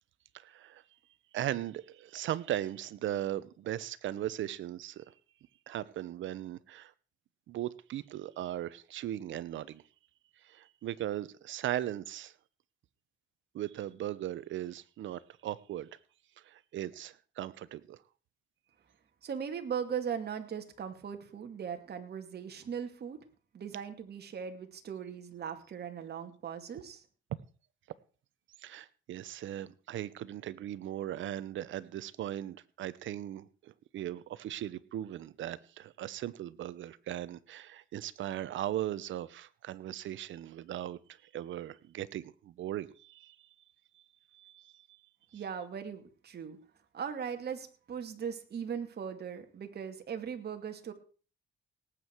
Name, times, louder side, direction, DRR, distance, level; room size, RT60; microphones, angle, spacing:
voice 1, 0.3-0.8 1.3-5.1 5.7-6.9 7.5-9.8 10.4-12.3 13.5-15.9 16.4-18.0 28.6-43.4 43.9-44.0 44.3-45.0, right 12 dB, 75° right, 17 dB, 0.9 m, -38 dB
voice 2, 19.2-23.2 23.5-27.0 45.3-46.6 46.9-50.9, right 7 dB, 55° right, 6 dB, 2.4 m, -39 dB
18.5 x 8.6 x 4.6 m, 0.39 s
cardioid pair, 90°, 20 cm